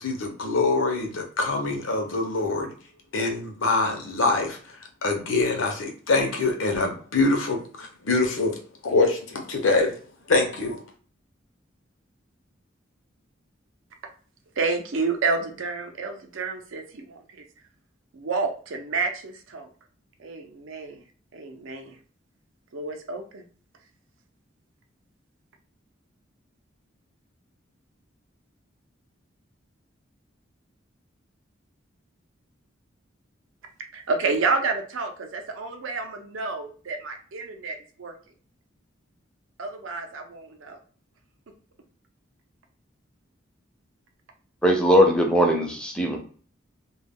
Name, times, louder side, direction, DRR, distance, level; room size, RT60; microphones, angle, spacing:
voice 1, 0.0-2.7 3.1-8.6 8.8-9.9 10.3-10.8, left 3 dB, 85° left, 2 dB, 0.7 m, -24 dB
voice 2, 14.6-17.4 18.1-19.7 20.2-21.0 21.3-22.0 22.7-23.5 33.9-38.1 39.6-40.8, right 4 dB, 85° right, 5 dB, 0.5 m, -29 dB
voice 3, 44.6-46.2, equal, 5° left, 2 dB, 0.4 m, -19 dB
2.3 x 2.1 x 3.4 m, 0.43 s
head